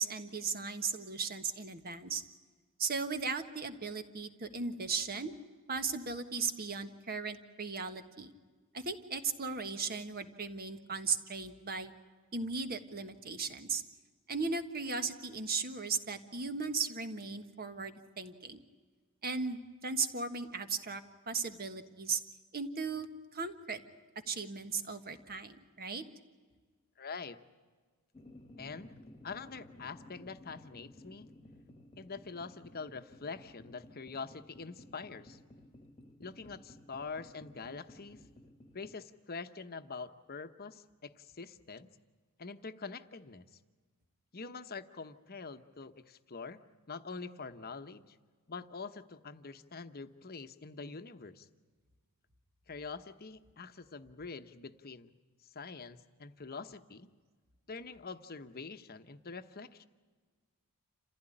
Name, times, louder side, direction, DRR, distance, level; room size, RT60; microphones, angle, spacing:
voice 1, 0.0-2.2 2.8-5.3 5.7-8.3 8.7-11.9 12.3-13.8 14.3-18.6 19.2-22.2 22.5-23.8 24.3-26.0, right 4 dB, 45° right, 8 dB, 1.5 m, -37 dB
voice 2, 27.0-27.4 28.6-29.0 29.2-31.3 32.0-35.4 36.2-38.2 38.7-41.9 42.4-43.4 44.3-46.6 46.9-48.2 48.5-51.5 52.7-55.1 55.5-57.1 57.7-59.9, left 4 dB, 45° left, 9 dB, 1.0 m, -45 dB
sound 1, 28.1-38.9, left 1 dB, 25° left, 1.5 m, -56 dB
28.5 x 15.5 x 10.0 m, 1.5 s
head